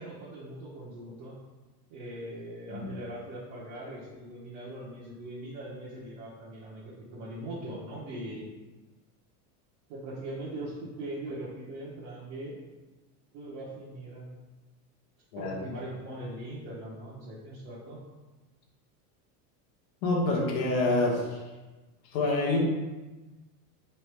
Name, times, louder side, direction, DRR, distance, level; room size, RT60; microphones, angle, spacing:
voice 1, 0.0-1.4 1.9-8.5 9.9-12.6 13.3-14.3 15.3-18.0, right 1 dB, 55° right, -7 dB, 1.0 m, -40 dB
voice 2, 20.0-21.4 22.0-22.6, left 2 dB, 35° left, -1 dB, 0.7 m, -27 dB
3.3 x 2.6 x 4.4 m, 1.2 s
supercardioid pair, 175°, 46 cm